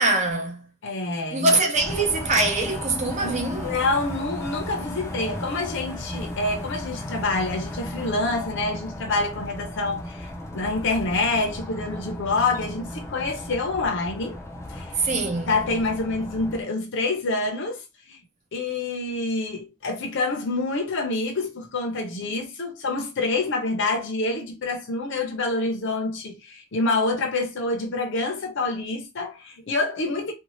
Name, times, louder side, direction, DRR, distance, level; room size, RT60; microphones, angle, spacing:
voice 1, 0.0-0.7 1.3-3.8 15.0-15.6, right 2 dB, 35° right, 0.7 m, -23 dB
voice 2, 0.8-1.6 3.2-14.4 14.7-15.0 15.5-18.2 18.5-30.3, left 3 dB, 60° left, 0.7 m, -27 dB
sound 1, 1.8-16.6, left 1 dB, 15° left, 0.5 m, -35 dB
2.6 x 2.3 x 3.0 m
head